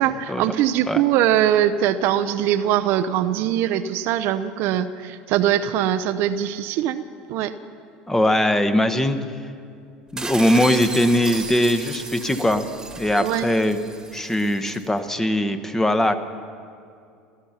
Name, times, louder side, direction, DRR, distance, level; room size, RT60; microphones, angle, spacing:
voice 1, 0.0-7.0 7.3-7.5 13.2-13.5, right 11 dB, 60° right, 11 dB, 0.6 m, -22 dB
voice 2, 8.1-9.2 10.1-12.7 13.0-13.8 14.1-16.1, left 1 dB, 10° left, 10 dB, 1.1 m, -20 dB
sound 1, 10.2-14.9, right 3 dB, 15° right, 1.6 m, -34 dB
17.5 x 13.5 x 5.8 m, 2.4 s
hypercardioid pair, 80°, 4 cm